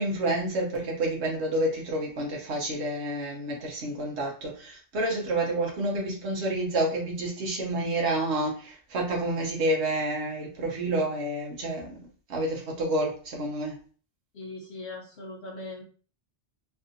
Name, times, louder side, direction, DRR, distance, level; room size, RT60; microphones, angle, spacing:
voice 1, 0.0-12.0 12.3-13.8, right 1 dB, 75° right, 1.2 m, -29 dB
voice 2, 14.3-15.8, left 2 dB, 70° left, 1.0 m, -40 dB
3.3 x 2.5 x 2.6 m
omnidirectional pair, 1.1 m